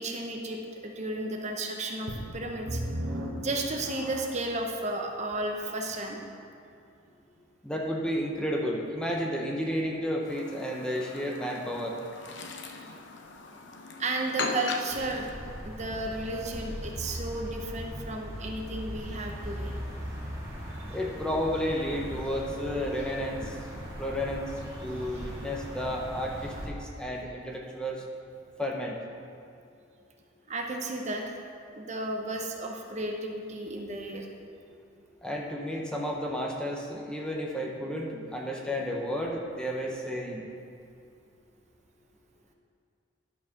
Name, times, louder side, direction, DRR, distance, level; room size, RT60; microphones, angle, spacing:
voice 1, 0.0-2.8 3.4-6.2 14.0-15.3 15.6-19.7 20.8-21.0 30.5-31.4 31.7-34.3, right 2 dB, 35° right, 2 dB, 0.7 m, -33 dB
sound 1, 2.1-4.5 5.2-5.3 5.9-6.0, right 1 dB, 80° right, 1.3 m, -36 dB
voice 2, 7.6-11.9 20.9-23.6 24.0-24.5 24.8-28.0 28.6-29.0 35.2-40.5, equal, 5° left, -1 dB, 0.7 m, -32 dB
Chirp tweet, 10.2-15.3, left 3 dB, 60° left, 0.7 m, -38 dB
sound 2, 14.9-26.7, equal, 15° right, 1.8 m, -39 dB
11.0 x 4.6 x 5.8 m, 2.4 s
head